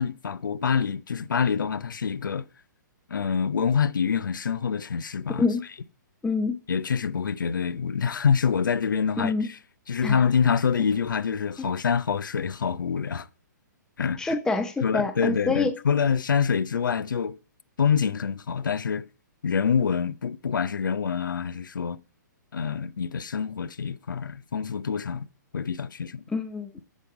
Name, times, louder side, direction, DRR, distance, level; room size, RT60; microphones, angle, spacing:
voice 1, 0.0-2.5 3.1-5.5 6.7-9.6 9.9-13.3 14.0-14.4 14.8-17.4 17.8-19.1 19.4-22.0 22.5-25.3 25.5-26.2, left 6 dB, 85° left, 0.7 m, -26 dB
voice 2, 6.2-6.6 9.2-9.5 10.0-10.2 11.6-11.8 14.2-15.7 26.3-26.8, left 3 dB, 5° left, 0.6 m, -26 dB
8.3 x 7.5 x 4.8 m
hypercardioid pair, 140°, 10 cm